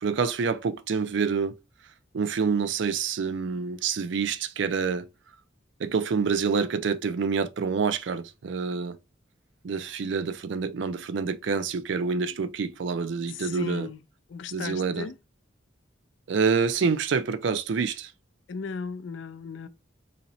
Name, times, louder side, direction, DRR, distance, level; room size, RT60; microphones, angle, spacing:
voice 1, 0.0-1.5 2.1-5.1 5.8-9.0 9.6-13.9 14.5-15.1 16.3-18.1, right 5 dB, 70° right, 0.4 m, -27 dB
voice 2, 13.3-14.0 14.3-15.2 18.5-19.7, left 5 dB, 75° left, 0.4 m, -36 dB
2.8 x 2.8 x 4.0 m
head